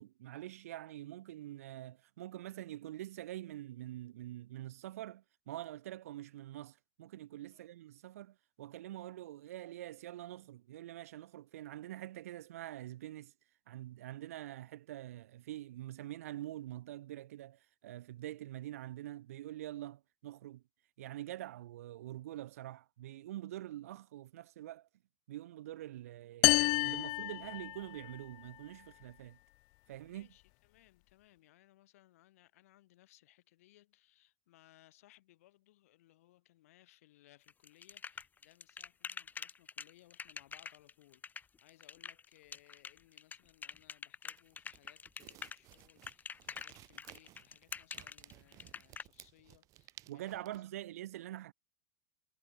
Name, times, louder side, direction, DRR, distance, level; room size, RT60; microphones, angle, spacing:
voice 1, 0.0-13.3 13.7-20.6 21.0-24.9 25.3-29.4 29.9-30.3 50.1-51.5, right 14 dB, 75° right, 2.8 m, -45 dB
sound 1, 26.4-28.2, left 33 dB, 55° left, 0.4 m, -30 dB
voice 2, 30.0-50.6, left 16 dB, 70° left, 5.4 m, -65 dB
sound 2, 37.5-49.0, left 6 dB, 20° left, 2.5 m, -46 dB
sound 3, 44.3-50.6, right 16 dB, 45° right, 5.6 m, -58 dB
hypercardioid pair, 105°, 8 cm